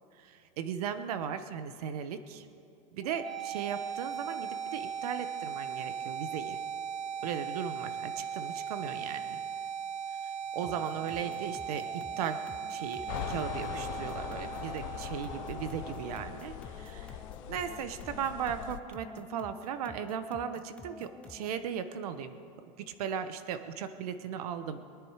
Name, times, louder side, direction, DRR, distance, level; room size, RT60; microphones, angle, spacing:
voice 1, 0.2-2.5 2.9-6.6 7.2-9.3 10.5-12.4 12.7-17.2 17.5-22.4 22.8-24.8, right 8 dB, 80° right, 11 dB, 1.0 m, -37 dB
sound 1, 3.0-17.0, right 7 dB, 65° right, 1.9 m, -38 dB
sound 2, 10.6-21.7, left 3 dB, 5° left, 0.3 m, -51 dB
sound 3, 13.1-18.8, left 13 dB, 60° left, 0.7 m, -41 dB
22.5 x 10.5 x 4.9 m, 2.5 s
supercardioid pair, 150°, 19 cm